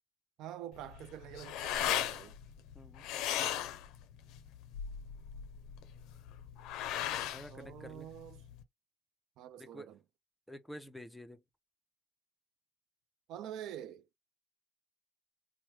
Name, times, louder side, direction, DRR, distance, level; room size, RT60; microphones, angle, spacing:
voice 1, 0.4-2.4 7.5-8.4 9.4-10.0 13.3-14.1, right 11 dB, 75° right, 0.3 m, -46 dB
sound 1, 0.7-8.6, left 10 dB, 85° left, 0.4 m, -38 dB
voice 2, 2.7-3.1 7.3-8.1 9.6-9.9 10.5-11.4, equal, 5° left, 0.5 m, -49 dB
3.1 x 2.1 x 3.1 m
cardioid pair, 110°, 0 cm